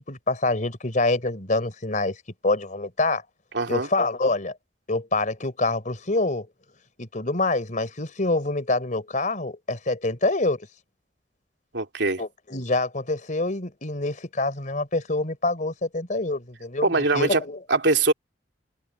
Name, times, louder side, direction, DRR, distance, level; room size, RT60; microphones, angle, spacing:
voice 1, 0.0-2.2 2.4-3.2 3.7-4.5 4.9-6.5 7.0-10.7 12.2-16.9 17.1-17.6, left 2 dB, 45° left, 4.1 m, -26 dB
voice 2, 3.5-3.9 11.7-12.2 16.8-17.4 17.7-18.1, right 3 dB, 90° right, 2.9 m, -22 dB
head